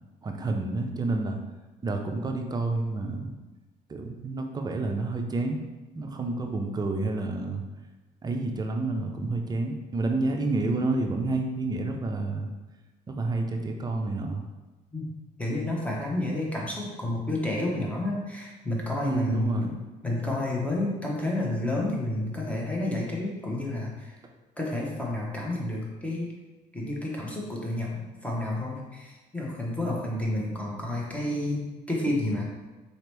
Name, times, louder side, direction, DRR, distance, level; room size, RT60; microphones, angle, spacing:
voice 1, 0.2-1.4 1.8-3.3 3.9-5.6 5.9-7.6 8.2-12.5 13.1-14.4 19.0-19.7, right 2 dB, 25° right, 3 dB, 0.5 m, -29 dB
voice 2, 15.4-19.7 20.0-24.2 24.6-26.3 26.7-32.4, left 1 dB, 10° left, -3 dB, 1.0 m, -30 dB
4.1 x 2.9 x 3.4 m, 1.2 s
cardioid pair, 110°, 17 cm